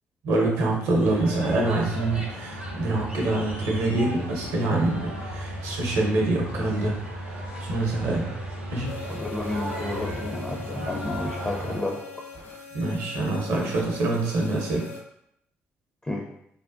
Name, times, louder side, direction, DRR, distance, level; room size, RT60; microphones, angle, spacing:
voice 1, 0.2-7.0 7.3-8.3 8.7-8.9 12.7-14.9, right 2 dB, 65° right, -1 dB, 0.7 m, -25 dB
sound 1, 1.0-11.8, equal, 90° right, 0.4 m, -35 dB
sound 2, 8.8-15.0, left 5 dB, 70° left, 1.2 m, -41 dB
voice 2, 9.1-12.0 16.0-16.3, left 2 dB, 15° left, -1 dB, 0.4 m, -31 dB
3.5 x 2.1 x 2.4 m, 0.75 s
figure-of-eight pair, 40°, 7 cm